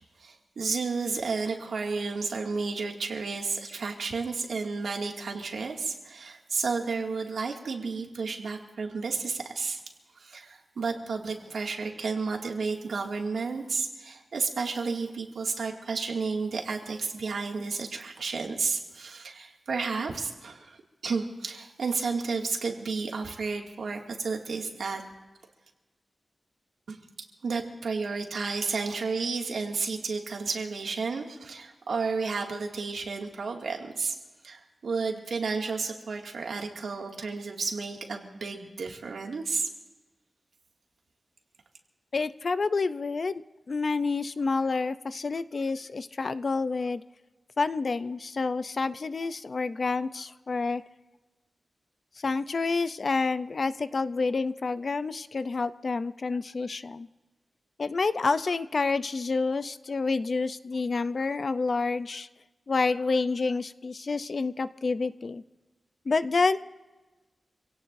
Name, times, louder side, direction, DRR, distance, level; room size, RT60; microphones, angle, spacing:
voice 1, 0.2-9.8 10.2-20.8 21.0-25.0 26.9-27.0 27.4-34.2 34.4-39.7, right 4 dB, 80° right, 1 dB, 2.2 m, -32 dB
voice 2, 42.1-47.0 47.6-50.8 52.2-57.1 57.8-62.3 62.7-65.4 66.1-66.6, left 4 dB, 45° left, 13 dB, 0.5 m, -28 dB
26.5 x 17.5 x 2.6 m, 1.2 s
wide cardioid pair, 170°, 0 cm